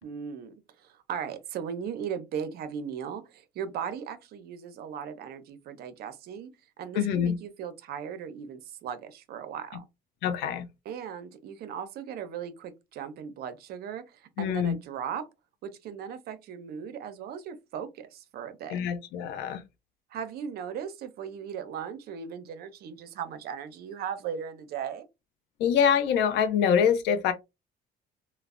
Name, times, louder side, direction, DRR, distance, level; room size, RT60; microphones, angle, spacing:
voice 1, 0.0-6.5 6.8-9.8 10.9-15.3 15.6-18.8 20.1-25.1, right 8 dB, 65° right, 0.6 m, -37 dB
voice 2, 6.9-7.4 10.2-10.6 14.4-14.8 18.7-19.6 25.6-27.3, left 8 dB, 85° left, 0.5 m, -25 dB
3.1 x 2.0 x 2.4 m
cardioid pair, 110°, 17 cm